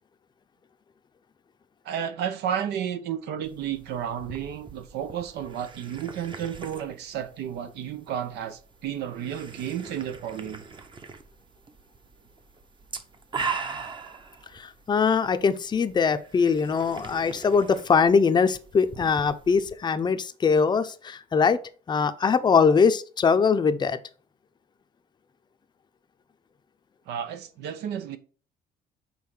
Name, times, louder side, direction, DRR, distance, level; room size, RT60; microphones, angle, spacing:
voice 1, 1.8-10.6 27.1-28.2, right 9 dB, 80° right, 0.9 m, -32 dB
sound 1, 3.4-19.7, right 5 dB, 30° right, 0.9 m, -41 dB
voice 2, 14.5-21.6 21.9-24.0, left 5 dB, 25° left, 0.6 m, -22 dB
5.6 x 4.2 x 6.0 m
cardioid pair, 110°, 17 cm